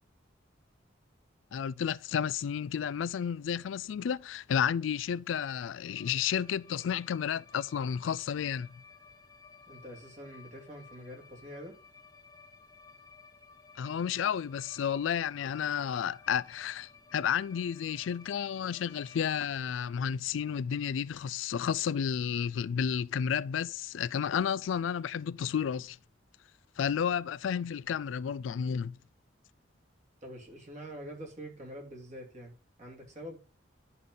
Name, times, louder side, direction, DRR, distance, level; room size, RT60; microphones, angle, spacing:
voice 1, 1.5-8.7 13.8-26.0 26.8-28.9, left 8 dB, 85° left, 0.3 m, -32 dB
sound 1, 5.8-19.4, left 5 dB, 20° left, 1.2 m, -56 dB
voice 2, 9.7-11.7 30.2-32.5 32.8-33.4, equal, 40° right, 2.8 m, -45 dB
11.0 x 5.5 x 3.8 m
head